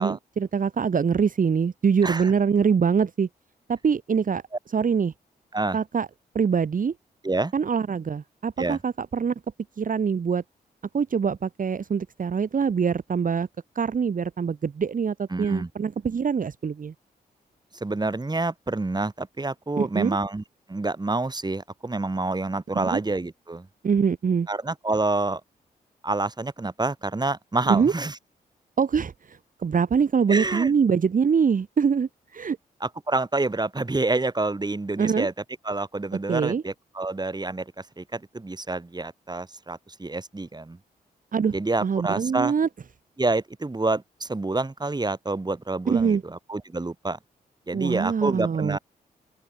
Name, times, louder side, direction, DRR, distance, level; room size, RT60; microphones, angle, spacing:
voice 1, 0.0-3.3 3.7-4.4 4.7-5.1 5.7-6.1 6.3-6.9 7.5-9.3 9.8-10.4 10.9-13.5 13.7-16.9 19.8-20.2 22.9-23.0 23.8-24.5 27.7-27.9 28.8-32.6 35.0-35.3 36.3-36.6 41.3-41.5 41.8-42.7 45.9-46.2 47.7-48.8, right 6 dB, 50° right, 1.7 m, -24 dB
voice 2, 15.3-15.7 17.8-20.4 20.7-23.7 24.5-25.4 26.0-28.2 30.3-30.7 32.8-35.3 35.6-40.8 41.5-42.5 43.2-47.2 47.7-48.8, right 2 dB, 25° right, 3.7 m, -28 dB
open air
supercardioid pair, 55°, 17 cm